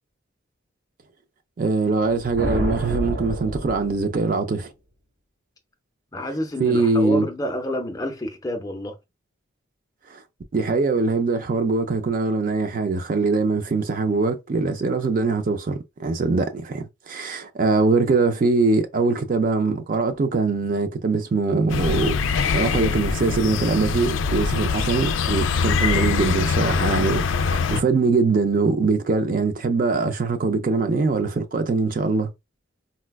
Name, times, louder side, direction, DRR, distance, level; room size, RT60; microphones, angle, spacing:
voice 1, 1.6-4.7 6.6-7.3 10.1-10.2 10.5-22.2 22.5-32.3, right 3 dB, 40° right, 0.4 m, -22 dB
sound 1, 2.0-4.4, equal, 60° right, 1.8 m, -29 dB
voice 2, 6.1-9.0, left 1 dB, 15° left, 0.5 m, -28 dB
sound 2, 21.7-27.8, left 5 dB, 70° left, 0.3 m, -23 dB
4.1 x 2.2 x 2.2 m
head